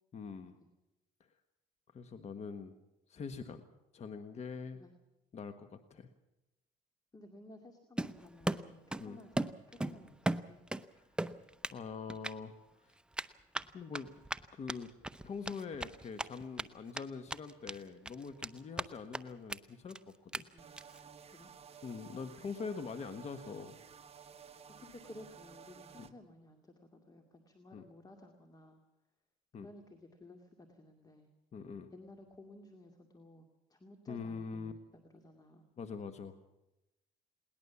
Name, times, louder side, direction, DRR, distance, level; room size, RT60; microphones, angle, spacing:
voice 1, 0.1-0.5 1.9-2.7 3.1-3.7 3.9-4.8 5.3-6.1 9.0-9.2 11.7-12.5 12.8-12.9 13.7-14.1 14.5-14.9 15.2-20.0 20.2-20.4 21.8-23.8 26.0-26.1 27.7-27.8 29.5-29.7 31.5-31.9 34.1-34.7 35.8-36.3, left 5 dB, 40° left, 9 dB, 1.4 m, -43 dB
voice 2, 7.1-10.6 20.5-20.8 21.3-21.5 24.8-28.8 29.5-31.3 31.9-34.8 35.1-35.7, left 1 dB, 20° left, 5 dB, 2.3 m, -55 dB
Run, 8.0-9.1 9.4-10.8 11.2-11.8 12.1-12.3 13.1-16.6 16.9-17.0 17.3-17.8 18.1-18.9 19.1-19.2 19.5-19.6 19.9-20.0 20.3-20.4 20.8-21.0, right 1 dB, 5° right, 0.7 m, -37 dB
sound 1, 20.6-26.1, right 7 dB, 35° right, 1.2 m, -54 dB
21.0 x 19.0 x 7.1 m, 0.94 s
cardioid pair, 110°, 17 cm